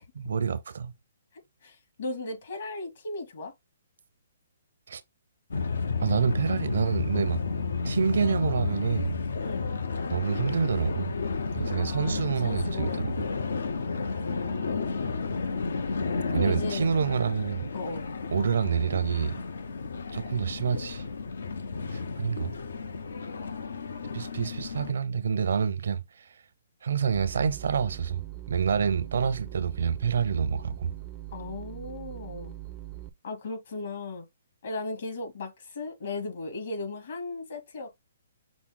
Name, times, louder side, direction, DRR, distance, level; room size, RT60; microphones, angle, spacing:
voice 1, 0.1-0.9 4.9-5.0 6.0-7.4 7.8-9.2 10.1-11.1 11.5-13.1 16.3-17.7 18.3-19.4 20.1-21.0 21.9-22.6 24.1-26.3 26.8-30.9, right 6 dB, 75° right, 0.6 m, -27 dB
voice 2, 1.6-3.5 9.4-9.8 11.7-13.0 14.1-15.2 16.3-16.9 17.7-18.1 31.3-32.6 33.2-34.3 34.6-37.9, left 2 dB, 60° left, 2.0 m, -37 dB
sound 1, 5.5-24.9, left 4 dB, 80° left, 0.6 m, -32 dB
sound 2, 27.1-33.1, right 16 dB, 20° right, 0.4 m, -41 dB
6.0 x 2.0 x 3.6 m
hypercardioid pair, 160°, 0 cm